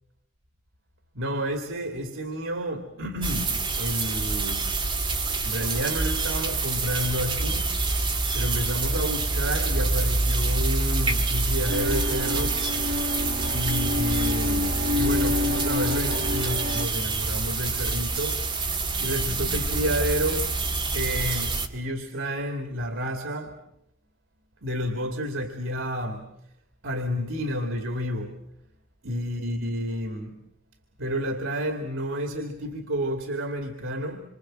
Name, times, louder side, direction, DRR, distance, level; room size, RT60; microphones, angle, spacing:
voice 1, 1.1-4.7 5.4-8.0 8.3-12.6 13.5-18.4 19.0-20.5 20.9-23.6 24.6-26.2 26.8-28.3 29.0-30.3 31.0-34.2, equal, 90° right, 5 dB, 2.4 m, -30 dB
sound 1, 3.2-21.7, right 3 dB, 25° right, 2.1 m, -26 dB
sound 2, 11.7-16.9, left 2 dB, 45° right, 1.0 m, -29 dB
27.0 x 25.0 x 7.6 m, 0.80 s
head